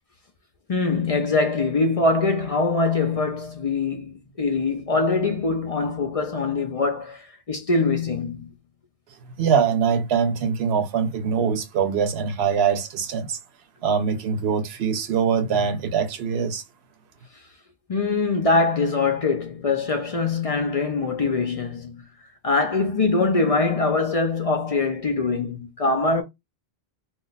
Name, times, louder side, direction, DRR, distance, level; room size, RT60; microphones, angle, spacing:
voice 1, 0.7-8.5 17.9-22.0 22.4-26.2, left 3 dB, 45° left, 0.5 m, -23 dB
voice 2, 9.4-13.4 13.8-16.6, right 6 dB, 80° right, 0.9 m, -23 dB
2.4 x 2.2 x 3.9 m
omnidirectional pair, 1.0 m